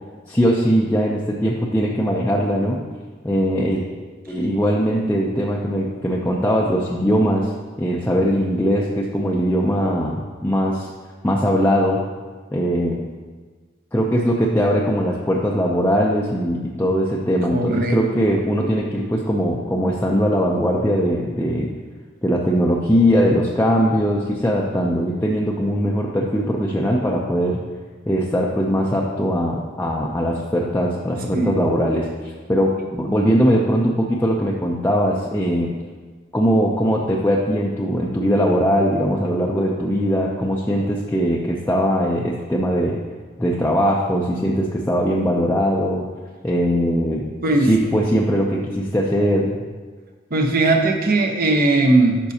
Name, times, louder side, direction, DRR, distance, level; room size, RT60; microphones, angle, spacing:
voice 1, 0.3-2.8 3.2-3.8 4.3-7.5 7.8-10.9 11.2-12.0 12.5-13.0 13.9-21.7 22.2-27.6 28.1-35.7 36.3-43.0 43.4-46.1 46.4-47.2 47.6-49.6, equal, 10° left, -3 dB, 0.5 m, -20 dB
voice 2, 17.5-18.0 31.3-31.6 47.4-47.7 50.3-52.2, right 2 dB, 50° right, 3 dB, 0.9 m, -18 dB
11.5 x 5.3 x 2.8 m, 1.5 s
head